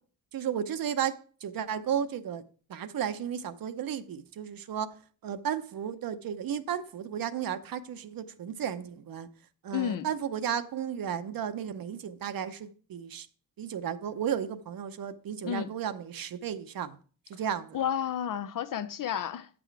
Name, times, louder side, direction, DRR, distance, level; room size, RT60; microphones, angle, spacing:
voice 1, 0.3-2.4 2.7-9.3 9.6-13.3 13.6-17.0 17.3-17.8, right 8 dB, 75° right, 0.8 m, -34 dB
voice 2, 9.7-10.1 15.4-15.7 17.7-19.5, left 9 dB, 65° left, 0.5 m, -31 dB
9.0 x 6.2 x 4.6 m
wide cardioid pair, 115°, 35 cm